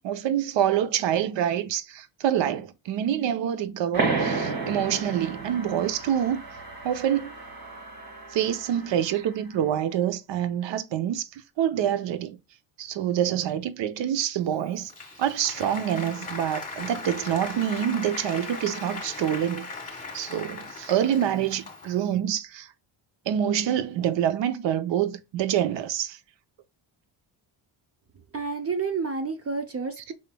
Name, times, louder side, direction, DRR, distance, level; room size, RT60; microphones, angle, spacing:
voice 1, 0.0-6.4 6.8-7.3 8.3-11.3 11.6-12.4 12.8-14.9 15.2-19.7 20.1-22.7 23.3-26.2, right 10 dB, 70° right, 0.7 m, -26 dB
sound 1, 3.9-9.2, right 4 dB, 50° right, 1.6 m, -32 dB
Applause, 14.5-22.1, left 3 dB, 15° left, 1.6 m, -39 dB
voice 2, 28.3-30.1, right 4 dB, 30° right, 0.6 m, -30 dB
5.6 x 3.3 x 2.2 m
cardioid pair, 95°, 46 cm